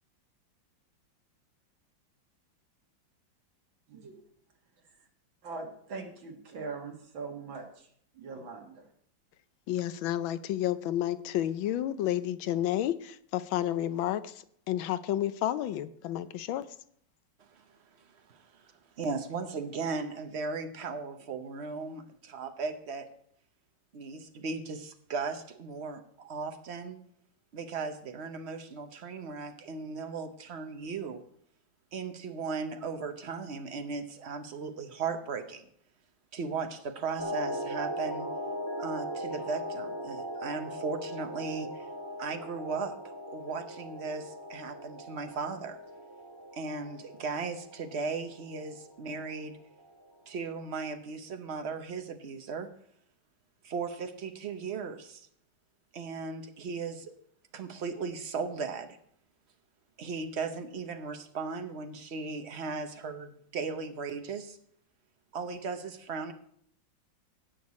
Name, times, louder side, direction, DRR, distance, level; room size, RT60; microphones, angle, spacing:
voice 1, 5.4-8.9, right 4 dB, 85° right, 2 dB, 2.6 m, -42 dB
voice 2, 9.7-14.3 14.7-16.7, left 12 dB, 85° left, 14 dB, 1.4 m, -30 dB
voice 3, 18.0-23.1 23.9-27.0 27.5-31.2 31.9-35.6 36.3-38.3 38.8-41.9 42.2-45.8 46.5-49.6 50.3-52.7 53.6-55.3 55.9-57.1 57.5-59.0 60.0-64.6 65.3-66.3, right 4 dB, 50° right, 7 dB, 0.8 m, -37 dB
sound 1, 37.2-50.0 50.5-50.6, equal, 25° right, 0.5 m, -39 dB
17.0 x 6.6 x 4.2 m, 0.64 s
omnidirectional pair, 2.1 m